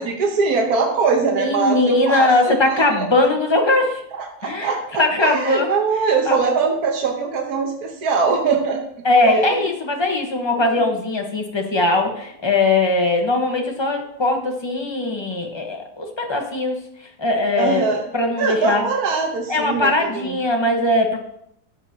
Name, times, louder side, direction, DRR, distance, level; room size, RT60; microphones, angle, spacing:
voice 1, 0.0-3.3 4.1-8.8 9.2-9.7 17.6-18.1 18.4-20.3, right 4 dB, 65° right, 2 dB, 1.6 m, -22 dB
voice 2, 1.4-4.0 4.4-5.7 6.3-6.4 9.0-16.8 17.2-18.8 19.5-21.2, left 2 dB, 20° left, 1 dB, 1.2 m, -20 dB
12.5 x 8.2 x 2.9 m, 0.72 s
omnidirectional pair, 1.7 m